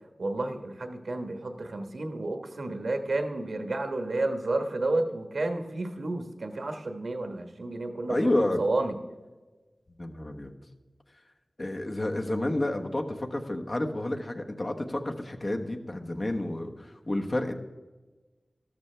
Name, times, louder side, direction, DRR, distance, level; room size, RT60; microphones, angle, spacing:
voice 1, 0.2-9.0, right 2 dB, 85° right, 6 dB, 1.3 m, -31 dB
voice 2, 8.1-8.6 10.0-10.5 11.6-17.5, left 1 dB, 45° left, 3 dB, 1.2 m, -30 dB
13.5 x 13.5 x 3.4 m, 1.2 s
wide cardioid pair, 65°, 0 cm